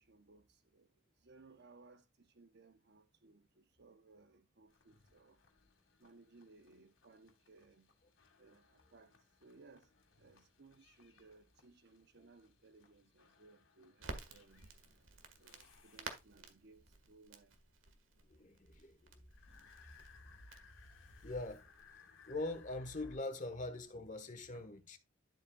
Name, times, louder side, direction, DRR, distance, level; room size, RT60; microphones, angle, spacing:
voice 1, 0.0-5.4 6.0-7.9 8.4-14.7 15.4-17.5 24.5-24.6, right 3 dB, 60° right, 0.9 m, -63 dB
sound 1, 4.7-16.6 19.3-23.2, left 3 dB, 85° left, 1.9 m, -63 dB
Crackle, 14.0-21.9, right 3 dB, 90° right, 1.7 m, -53 dB
voice 2, 18.3-19.3 21.2-21.7 22.3-25.0, left 2 dB, 40° left, 1.3 m, -43 dB
12.0 x 7.5 x 2.3 m
head